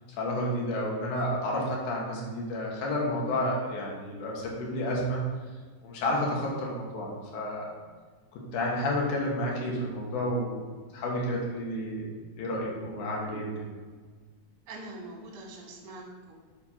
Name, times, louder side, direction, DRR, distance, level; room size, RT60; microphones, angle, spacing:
voice 1, 0.2-5.2 5.8-7.7 8.3-10.5 10.9-12.1 12.4-13.5, left 1 dB, 70° left, -3 dB, 2.8 m, -30 dB
voice 2, 14.7-16.4, right 2 dB, 60° right, -1 dB, 2.5 m, -43 dB
7.5 x 3.7 x 5.5 m, 1.5 s
omnidirectional pair, 3.8 m